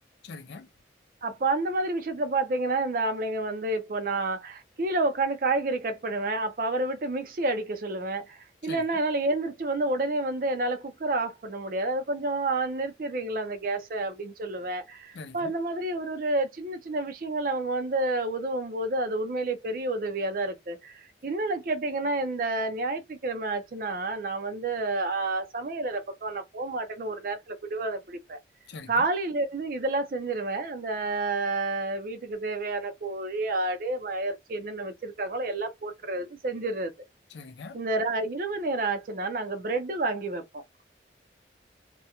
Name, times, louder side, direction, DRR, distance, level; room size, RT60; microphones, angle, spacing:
voice 1, 0.2-0.7 8.6-8.8 15.1-15.5 28.7-29.0 37.3-37.8, left 4 dB, 70° left, 0.4 m, -42 dB
voice 2, 1.2-28.4 28.9-36.9 37.7-40.6, right 2 dB, 50° right, 0.4 m, -29 dB
2.4 x 2.1 x 2.8 m
head